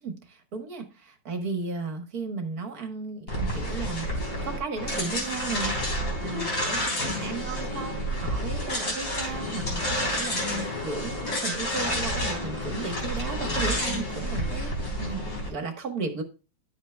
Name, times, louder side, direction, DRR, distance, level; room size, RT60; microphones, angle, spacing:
voice 1, 0.0-4.0 4.4-6.9 7.2-14.7 15.0-16.2, right 4 dB, 50° right, 5 dB, 1.6 m, -35 dB
sound 1, 3.3-15.5, equal, 50° left, 4.2 m, -29 dB
11.0 x 8.1 x 2.2 m, 0.32 s
omnidirectional pair, 2.2 m